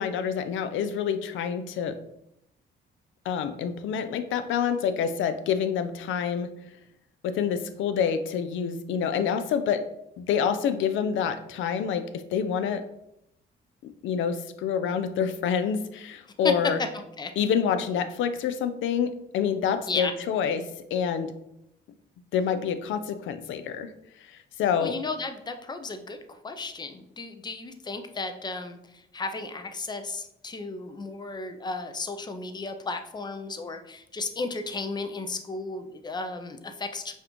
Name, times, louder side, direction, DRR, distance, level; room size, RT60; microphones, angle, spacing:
voice 1, 0.0-2.0 3.2-6.5 7.2-9.8 10.2-12.8 13.8-16.8 17.4-21.3 22.3-23.9 24.2-25.0, left 7 dB, 75° left, 10 dB, 0.4 m, -27 dB
voice 2, 24.8-26.2 26.4-37.1, left 3 dB, 20° left, 8 dB, 0.4 m, -34 dB
5.2 x 2.5 x 3.0 m, 0.80 s
cardioid pair, 90°, 20 cm